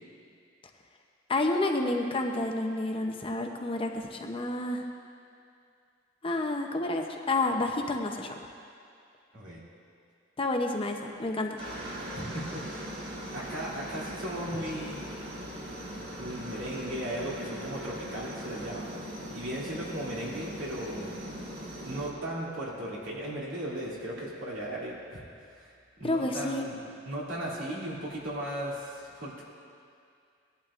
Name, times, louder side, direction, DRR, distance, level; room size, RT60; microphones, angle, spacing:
voice 1, 1.3-4.8 6.2-8.3 10.4-11.6 26.0-26.7, left 2 dB, 25° left, 3 dB, 0.7 m, -29 dB
Aircraft, 11.6-22.1, equal, 55° right, 1.6 m, -40 dB
voice 2, 12.1-12.9 13.3-15.0 16.2-21.1 21.8-25.2 25.5-25.7 26.0-29.4, right 1 dB, 75° right, -5 dB, 2.6 m, -36 dB
18.0 x 11.5 x 2.5 m, 2.4 s
head